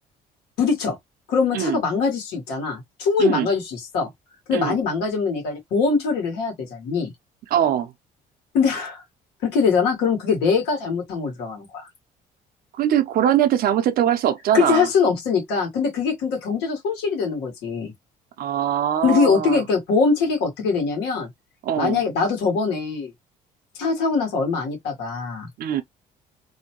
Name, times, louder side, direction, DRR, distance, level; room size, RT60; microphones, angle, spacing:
voice 1, 0.6-1.0 1.3-4.1 4.5-7.1 8.5-9.0 9.4-11.9 14.5-17.9 19.0-21.3 21.8-23.1 23.8-25.5, left 5 dB, 90° left, 1.3 m, -22 dB
voice 2, 7.5-7.9 12.7-14.9 18.4-19.6 21.6-22.0 25.6-25.8, right 10 dB, 60° right, 0.6 m, -22 dB
2.7 x 2.2 x 2.9 m
cardioid pair, 110°, 17 cm